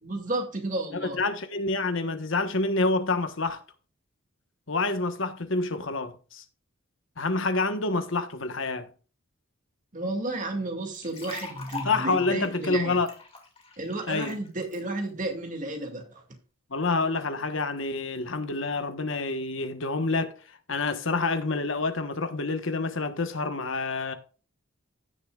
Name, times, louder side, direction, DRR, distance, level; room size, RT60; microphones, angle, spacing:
voice 1, 0.0-1.2 9.9-13.0 13.8-16.2, right 2 dB, 35° right, 2.1 m, -32 dB
voice 2, 0.9-3.6 4.7-6.4 7.2-8.9 11.8-13.1 14.1-14.4 16.7-20.3 20.7-24.1, left 3 dB, 65° left, 1.2 m, -27 dB
sound 1, 10.9-14.8, left 4 dB, 25° left, 2.2 m, -43 dB
16.0 x 6.8 x 2.4 m
head